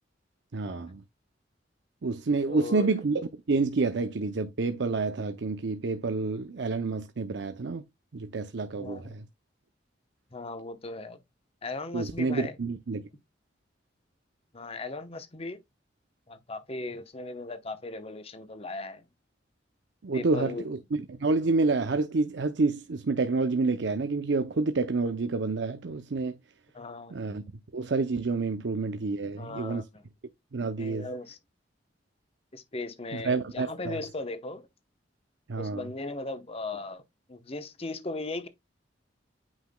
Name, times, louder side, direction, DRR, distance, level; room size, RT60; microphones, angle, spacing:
voice 1, 0.5-1.0 2.0-7.8 8.1-9.2 11.9-13.0 20.0-20.8 21.1-26.4 27.1-27.4 27.7-29.8 30.5-31.1 33.1-34.0 35.5-35.8, right 3 dB, 70° right, 0.6 m, -28 dB
voice 2, 2.5-2.9 8.7-9.1 10.3-11.2 11.6-12.6 14.5-15.6 16.3-19.0 20.1-20.7 26.7-27.2 29.2-30.0 30.8-31.4 32.5-34.7 35.6-37.0 37.3-38.5, left 2 dB, 35° left, 0.9 m, -37 dB
8.9 x 5.6 x 2.2 m
head